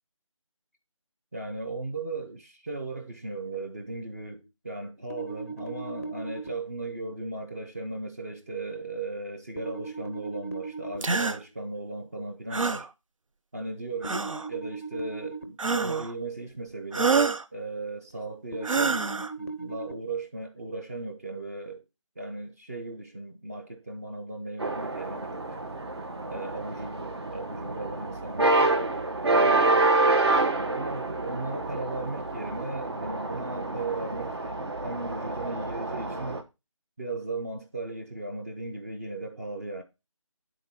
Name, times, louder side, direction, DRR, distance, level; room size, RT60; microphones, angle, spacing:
voice 1, 1.3-12.9 13.5-19.1 19.4-21.8 22.2-25.4 26.3-28.8 29.3-29.9 30.7-34.4 34.8-36.4 37.0-39.8, right 3 dB, 30° right, 0.7 m, -36 dB
sound 1, 5.1-6.5 9.6-11.0 14.0-15.4 18.5-19.9, right 4 dB, 25° left, 0.5 m, -38 dB
sound 2, 11.0-11.4 12.5-12.9 14.0-14.5 15.6-16.1 16.9-17.4 18.6-19.3, right 4 dB, 75° right, 0.7 m, -26 dB
sound 3, 24.6-36.4, right 2 dB, 50° right, 1.0 m, -27 dB
9.4 x 3.8 x 4.2 m
figure-of-eight pair, 165°, 17 cm